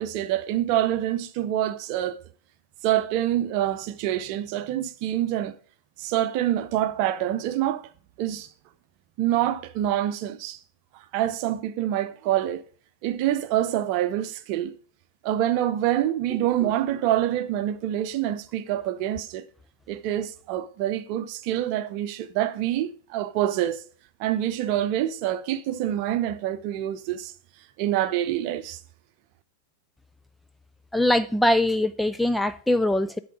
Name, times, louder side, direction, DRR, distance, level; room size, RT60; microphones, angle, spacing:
voice 1, 0.0-2.2 2.8-5.6 6.0-7.9 8.2-8.5 9.2-10.6 11.1-12.7 13.0-14.7 15.2-19.4 19.9-23.8 24.2-27.3 27.8-28.8, right 12 dB, 45° right, 0.7 m, -26 dB
voice 2, 30.9-33.2, left 1 dB, 5° left, 0.4 m, -22 dB
11.0 x 4.0 x 4.9 m
figure-of-eight pair, 90°, 0 cm